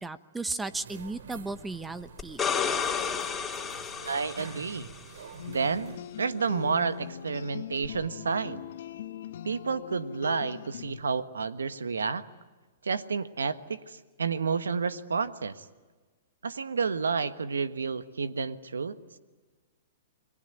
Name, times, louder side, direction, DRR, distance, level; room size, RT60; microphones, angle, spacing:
voice 1, 0.0-2.4, right 3 dB, 10° right, 14 dB, 1.0 m, -35 dB
sound 1, 0.6-6.0, right 5 dB, 75° right, 2.8 m, -47 dB
sound 2, 2.2-5.0 7.8-7.9, left 7 dB, 15° left, 3.3 m, -31 dB
voice 2, 4.1-4.9 5.4-8.6 9.4-12.2 12.8-15.6 16.4-19.0, right 5 dB, 90° right, 12 dB, 1.4 m, -30 dB
sound 3, 5.4-11.0, left 10 dB, 65° left, 1.3 m, -41 dB
29.5 x 21.5 x 9.0 m, 1.3 s
hypercardioid pair, 125°, 0 cm